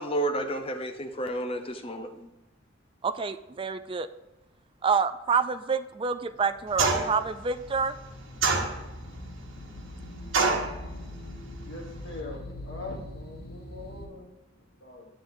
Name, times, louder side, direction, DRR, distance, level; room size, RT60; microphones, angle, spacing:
voice 1, 0.0-2.3, right 1 dB, 30° left, 6 dB, 0.7 m, -31 dB
voice 2, 3.0-4.1 4.8-7.9, right 5 dB, 25° right, 11 dB, 0.4 m, -27 dB
sound 1, 6.3-14.1, left 1 dB, 50° left, 1.1 m, -43 dB
sound 2, 6.8-7.3 8.4-9.1 10.3-10.7, right 4 dB, 75° right, 1.2 m, -25 dB
voice 3, 11.6-15.1, left 2 dB, 90° left, -2 dB, 2.6 m, -42 dB
10.0 x 8.6 x 2.7 m, 0.99 s
head